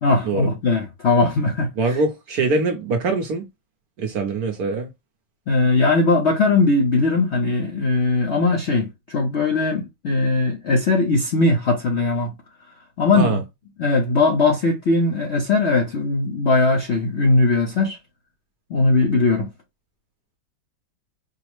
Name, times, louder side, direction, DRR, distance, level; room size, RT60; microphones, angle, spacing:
voice 1, 0.0-1.7 5.5-12.3 13.0-13.4 13.8-18.0 18.7-19.5, left 3 dB, 65° left, 0.6 m, -19 dB
voice 2, 1.8-3.4 4.0-4.9 13.1-13.4, right 3 dB, 65° right, 1.0 m, -23 dB
4.7 x 2.1 x 3.0 m
omnidirectional pair, 2.1 m